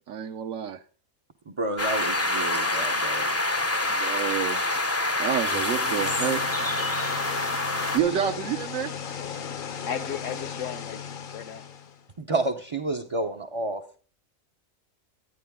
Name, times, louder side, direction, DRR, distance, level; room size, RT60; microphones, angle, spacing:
voice 1, 0.1-0.8 3.8-4.6 5.2-6.4 7.9-8.9, right 9 dB, 70° right, 1.0 m, -28 dB
voice 2, 1.5-3.4 8.1-8.2 12.2-13.8, right 2 dB, 35° right, 0.5 m, -30 dB
sound 1, 1.8-8.0, left 2 dB, 20° left, 0.4 m, -26 dB
sound 2, 5.3-12.1, left 7 dB, 50° left, 0.7 m, -36 dB
voice 3, 9.9-11.0 11.3-11.6, left 8 dB, 65° left, 1.2 m, -34 dB
11.0 x 9.3 x 3.5 m
omnidirectional pair, 1.4 m